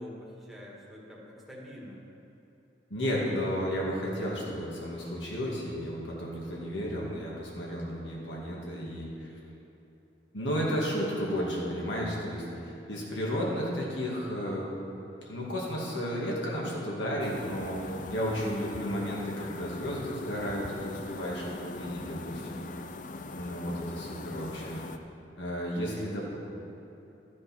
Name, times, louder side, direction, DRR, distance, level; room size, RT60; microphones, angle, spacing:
voice 1, 0.0-2.0 12.4-12.8 22.2-22.6, left 1 dB, ahead, -5 dB, 1.8 m, -46 dB
voice 2, 2.9-9.4 10.3-14.7 15.3-22.6 23.3-24.8 25.4-26.4, equal, 80° left, -4 dB, 2.3 m, -33 dB
sound 1, 17.2-25.0, left 3 dB, 45° left, 0.5 m, -41 dB
13.0 x 7.5 x 6.1 m, 3.0 s
head